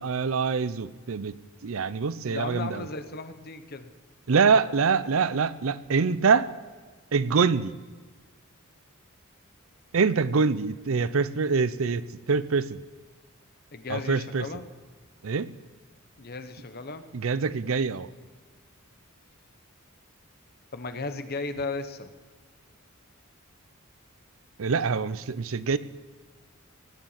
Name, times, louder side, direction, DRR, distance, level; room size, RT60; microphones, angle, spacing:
voice 1, 0.0-1.4 1.6-2.9 4.3-6.5 7.1-7.7 9.9-12.8 13.9-14.4 15.2-15.5 17.1-18.1 24.6-25.8, right 5 dB, 65° right, 16 dB, 0.5 m, -25 dB
voice 2, 2.2-3.9 13.7-14.7 16.2-17.0 20.7-22.1, left 3 dB, 45° left, 10 dB, 1.0 m, -35 dB
17.5 x 9.1 x 7.3 m, 1.4 s
head